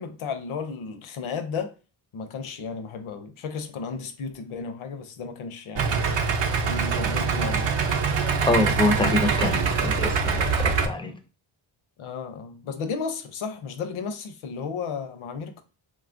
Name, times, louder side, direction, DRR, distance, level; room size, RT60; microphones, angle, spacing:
voice 1, 0.0-1.7 2.1-6.1 6.7-7.7 12.0-15.6, left 5 dB, 70° left, 0.6 m, -34 dB
Idling, 5.8-10.9, right 5 dB, 60° right, 0.6 m, -24 dB
voice 2, 8.5-11.2, left 2 dB, 10° left, 0.3 m, -25 dB
2.9 x 2.3 x 2.5 m
cardioid pair, 75°, 50 cm